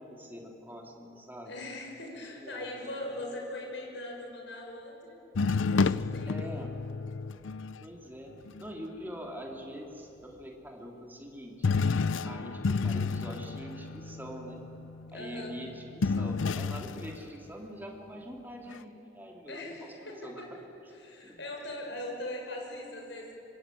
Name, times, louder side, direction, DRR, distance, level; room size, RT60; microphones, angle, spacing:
voice 1, 0.0-1.5 2.4-2.7 6.3-6.7 7.8-8.3 8.6-11.7 12.2-14.6 15.1-20.4 21.2-21.4, equal, 10° right, 0 dB, 3.0 m, -44 dB
voice 2, 1.4-5.2 5.7-6.5 15.1-15.5 19.5-20.5 20.9-23.3, left 1 dB, 70° left, 1 dB, 6.5 m, -40 dB
sound 1, 5.4-7.8 8.5-8.6 11.6-17.2 18.7-18.8, left 4 dB, 85° left, 0.5 m, -30 dB
25.5 x 23.5 x 9.2 m, 2.9 s
head